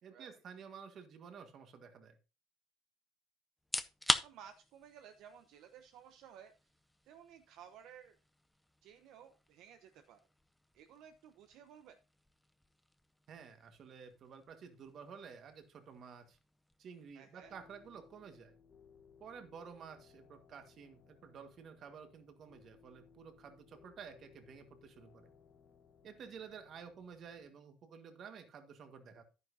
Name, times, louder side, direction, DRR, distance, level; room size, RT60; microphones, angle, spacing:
voice 1, 0.0-2.2 13.3-16.4 16.8-18.5 19.2-25.3 26.0-29.2, right 6 dB, 40° right, 9 dB, 1.6 m, -52 dB
sound 1, 3.6-18.4, left 1 dB, 5° left, 0.5 m, -44 dB
voice 2, 4.2-6.5 7.0-8.2 8.8-10.2 10.7-12.0 17.1-17.5, right 8 dB, 60° right, 8 dB, 0.8 m, -56 dB
sound 2, 17.4-27.5, left 6 dB, 30° left, 1.1 m, -64 dB
10.5 x 9.7 x 2.7 m, 0.31 s
cardioid pair, 150°, 0 cm